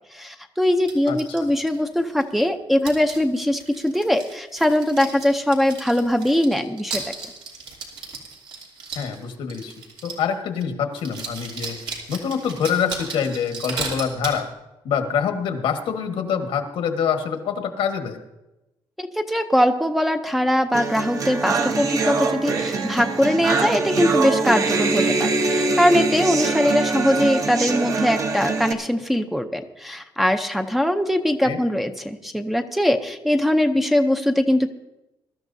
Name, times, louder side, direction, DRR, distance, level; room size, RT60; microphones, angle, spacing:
voice 1, 0.1-7.1 19.0-34.7, left 1 dB, ahead, 4 dB, 0.6 m, -21 dB
sound 1, 0.9-2.5 2.8-10.3 10.6-10.7 10.9-14.4, right 4 dB, 85° right, 2.9 m, -35 dB
voice 2, 8.9-9.7 10.0-11.8 12.1-14.5 14.8-18.2 31.4-31.6, left 7 dB, 90° left, 5 dB, 1.5 m, -25 dB
sound 2, 20.7-28.7, right 3 dB, 40° right, 1.0 m, -23 dB
22.0 x 13.0 x 2.7 m, 0.98 s
cardioid pair, 165°, 9 cm